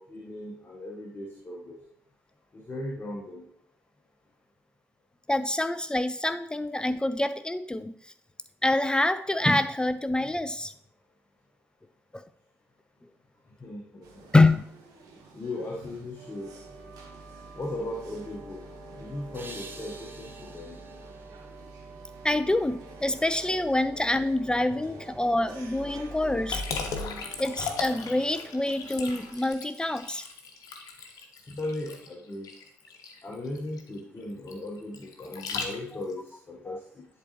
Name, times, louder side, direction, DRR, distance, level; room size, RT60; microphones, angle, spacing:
voice 1, 0.0-1.8 2.5-3.5 13.6-14.3 15.3-16.5 17.6-18.6 19.0-20.8 31.5-32.5 33.2-37.1, left 1 dB, 30° left, -2 dB, 1.3 m, -37 dB
voice 2, 5.3-7.9 8.6-10.7 14.3-14.6 22.2-26.6 27.4-30.2 36.7-36.8, left 2 dB, 10° left, 12 dB, 0.4 m, -26 dB
sound 1, 14.0-29.3, right 2 dB, 60° right, 1.3 m, -46 dB
sound 2, 19.3-22.5, right 3 dB, 30° right, 1.1 m, -48 dB
Liquid, 26.5-36.1, left 5 dB, 55° left, 1.0 m, -37 dB
10.5 x 3.9 x 3.0 m, 0.66 s
figure-of-eight pair, 45°, 7 cm